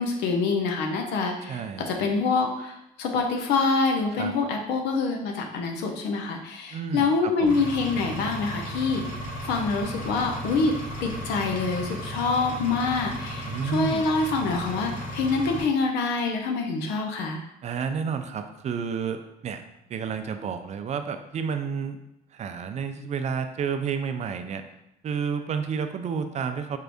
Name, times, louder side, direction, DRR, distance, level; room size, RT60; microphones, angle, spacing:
voice 1, 0.0-9.0 9.4-10.7 11.0-17.4, left 4 dB, 85° left, 3 dB, 0.7 m, -26 dB
voice 2, 1.4-2.2 4.1-4.3 6.7-7.6 13.4-14.0 17.6-19.6 19.9-22.0 22.3-24.6 25.0-26.8, right 6 dB, 40° right, 8 dB, 0.4 m, -31 dB
Engine, 7.5-15.6, equal, 50° left, 1.3 m, -35 dB
4.5 x 2.5 x 3.4 m, 0.85 s
cardioid pair, 110°, 17 cm